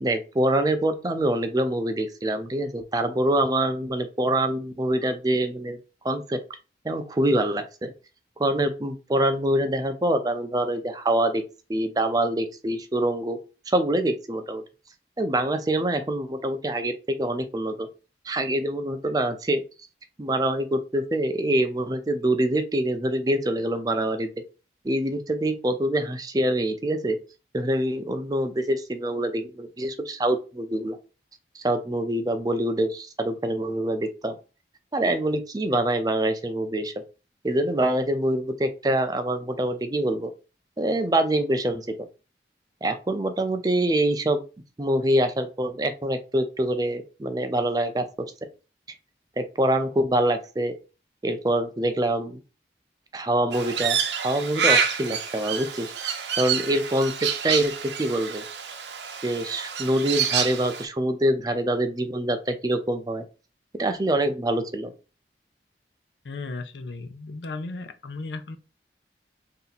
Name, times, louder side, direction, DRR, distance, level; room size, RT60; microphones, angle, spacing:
voice 1, 0.0-5.8 6.0-6.4 6.8-7.9 8.4-11.4 11.7-13.4 13.7-14.6 15.2-17.9 18.3-19.6 20.2-24.3 24.8-27.2 27.5-31.0 31.5-34.3 34.9-36.9 37.4-40.3 40.8-41.9 42.8-44.4 44.8-48.3 49.4-50.7 51.2-52.4 53.1-57.7 58.0-58.4 59.2-63.2 63.7-64.9, right 1 dB, 20° right, 0.5 m, -25 dB
Crow, 53.5-60.8, right 7 dB, 85° right, 0.7 m, -28 dB
voice 2, 66.2-68.6, left 3 dB, 85° left, 0.6 m, -35 dB
3.3 x 2.8 x 4.0 m
head